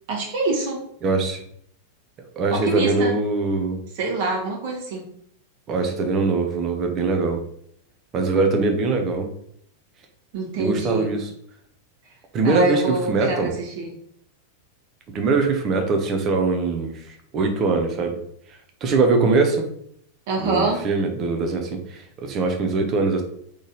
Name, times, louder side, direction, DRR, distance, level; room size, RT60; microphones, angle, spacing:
voice 1, 0.1-0.8 2.5-3.1 3.9-5.1 10.3-11.1 12.4-13.9 20.3-20.8, right 3 dB, 50° right, -1 dB, 1.5 m, -25 dB
voice 2, 1.0-1.4 2.4-3.8 5.7-7.4 8.1-9.3 10.6-11.3 12.3-13.5 15.1-18.2 18.8-19.7 20.4-23.2, right 3 dB, 30° right, 4 dB, 0.9 m, -22 dB
3.9 x 3.3 x 4.0 m, 0.68 s
figure-of-eight pair, 90°, 0 cm